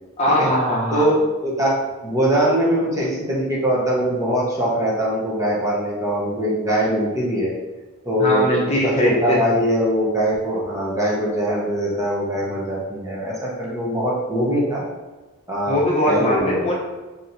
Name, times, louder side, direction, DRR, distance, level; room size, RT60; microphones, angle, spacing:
voice 1, 0.2-1.1 8.2-9.6 15.7-16.7, left 1 dB, 30° left, -4 dB, 0.8 m, -20 dB
voice 2, 0.9-1.7 2.0-7.5 8.0-14.8 15.5-15.8 16.1-16.6, equal, 15° right, -5 dB, 0.8 m, -22 dB
3.0 x 2.8 x 4.0 m, 1.2 s
head